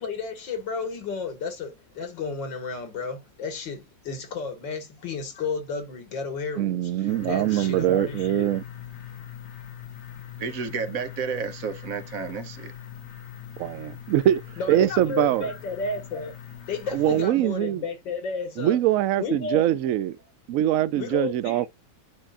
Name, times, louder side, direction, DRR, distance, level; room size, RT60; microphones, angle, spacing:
voice 1, 0.0-6.9 7.3-8.5 14.6-16.4 16.7-18.8 19.2-19.6 20.9-21.7, left 4 dB, 80° left, 2.4 m, -32 dB
voice 2, 6.6-8.6 13.6-14.4 14.7-15.5 16.9-17.8 18.6-20.2 20.5-21.7, right 12 dB, 85° right, 0.7 m, -23 dB
sound 1, 7.1-17.3, left 9 dB, 50° left, 0.9 m, -42 dB
voice 3, 10.4-12.7, right 5 dB, 55° right, 1.2 m, -31 dB
10.0 x 4.4 x 2.4 m
omnidirectional pair, 2.0 m